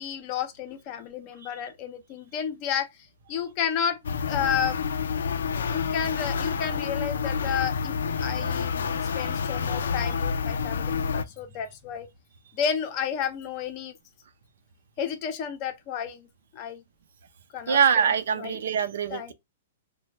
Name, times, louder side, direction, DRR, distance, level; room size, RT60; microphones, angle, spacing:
voice 1, 0.0-2.9 3.3-4.8 5.7-7.9 8.2-12.1 12.5-13.9 15.0-16.3 16.5-16.8 17.5-18.1 18.4-18.6 19.1-19.3, left 8 dB, 30° left, 0.5 m, -31 dB
sound 1, 4.0-11.2, left 6 dB, 85° left, 0.3 m, -28 dB
voice 2, 17.7-19.3, right 7 dB, 75° right, 0.5 m, -23 dB
3.1 x 2.1 x 3.1 m
hypercardioid pair, 165°, 0 cm